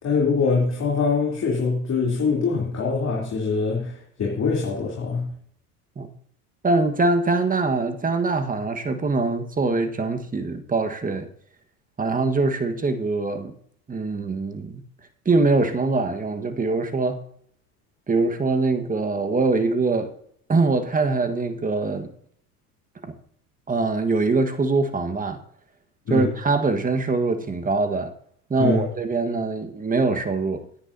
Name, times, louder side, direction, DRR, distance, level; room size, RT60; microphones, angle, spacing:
voice 1, 0.0-5.3 26.1-26.3 28.6-28.9, left 4 dB, 35° left, 3.5 m, -23 dB
voice 2, 6.6-11.3 12.0-13.6 13.9-14.8 15.2-17.2 18.1-20.1 20.5-22.1 23.0-23.1 23.7-25.4 26.1-28.1 28.5-30.7, right 3 dB, 20° right, 1.5 m, -23 dB
17.0 x 10.0 x 2.8 m
hypercardioid pair, 80°, 45 cm